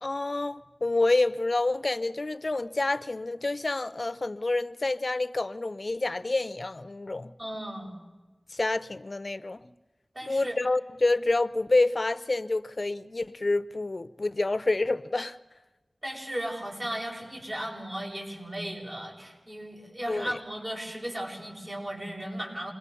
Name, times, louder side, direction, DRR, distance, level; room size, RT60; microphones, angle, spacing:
voice 1, 0.0-7.3 8.5-9.7 10.3-15.4 20.1-20.4, left 2 dB, 55° left, 0.7 m, -28 dB
voice 2, 7.4-8.0 10.1-10.6 16.0-22.7, equal, 40° right, 7.7 m, -36 dB
28.0 x 22.0 x 7.0 m
wide cardioid pair, 50°, 0 cm